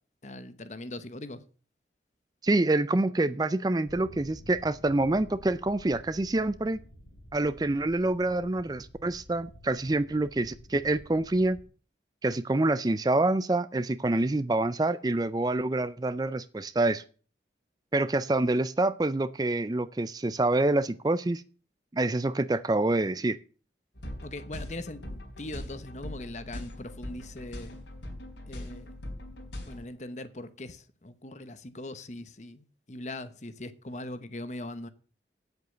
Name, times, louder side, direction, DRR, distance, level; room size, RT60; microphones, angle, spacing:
voice 1, 0.2-1.4 24.2-27.8 28.5-29.0 29.6-34.9, left 2 dB, 40° left, 1.0 m, -41 dB
voice 2, 2.4-6.8 7.3-11.6 12.2-17.0 17.9-21.4 21.9-23.4, right 2 dB, 20° right, 0.4 m, -26 dB
sound 1, 3.8-11.7, equal, 65° left, 3.9 m, -51 dB
sound 2, 24.0-29.9, left 1 dB, 90° left, 4.3 m, -41 dB
9.4 x 8.0 x 6.6 m
head